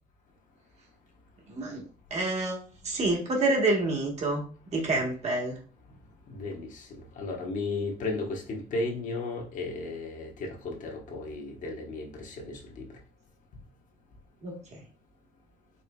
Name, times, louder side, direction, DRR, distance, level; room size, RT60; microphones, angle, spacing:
voice 1, 1.5-1.8 2.1-4.4 4.7-5.6 14.4-14.8, right 2 dB, 45° right, 0 dB, 1.2 m, -28 dB
voice 2, 6.3-12.9, left 3 dB, 55° left, 1 dB, 1.0 m, -35 dB
4.4 x 3.2 x 2.3 m, 0.41 s
cardioid pair, 125°, 16 cm